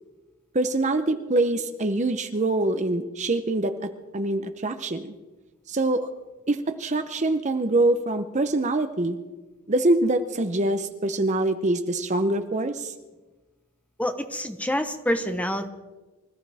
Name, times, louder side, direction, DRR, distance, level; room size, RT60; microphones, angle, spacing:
voice 1, 0.5-5.1 5.7-6.1 6.5-9.2 9.7-12.9, right 2 dB, 30° right, 8 dB, 0.7 m, -24 dB
voice 2, 14.0-15.7, equal, 5° left, 7 dB, 1.0 m, -27 dB
25.0 x 14.5 x 3.5 m, 1.2 s
head